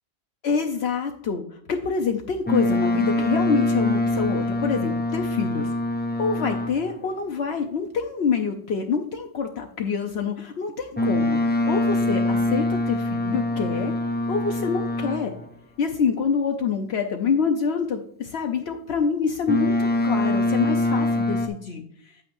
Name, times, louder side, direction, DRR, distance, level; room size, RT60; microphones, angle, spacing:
voice 1, 0.4-5.7 6.2-13.9 14.3-15.3 15.8-22.1, left 5 dB, 70° left, 4 dB, 1.0 m, -26 dB
Boat Water vehicle, 2.5-7.0 11.0-15.5 19.5-21.5, left 2 dB, 15° left, 0.4 m, -24 dB
8.8 x 8.4 x 2.6 m, 0.63 s
omnidirectional pair, 1.1 m